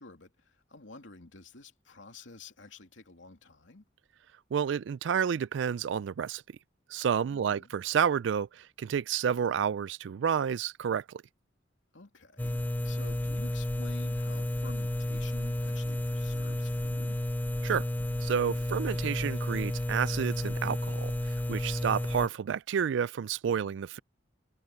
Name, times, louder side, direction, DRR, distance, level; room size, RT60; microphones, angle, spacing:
voice 1, 0.0-3.8 7.3-7.7 11.9-17.2 23.5-23.8, left 3 dB, 85° left, 2.9 m, -50 dB
voice 2, 4.5-6.4 6.9-11.2 17.6-17.8 18.2-24.0, right 7 dB, 75° right, 0.3 m, -30 dB
sound 1, 12.4-22.3, left 1 dB, 10° left, 0.4 m, -32 dB
head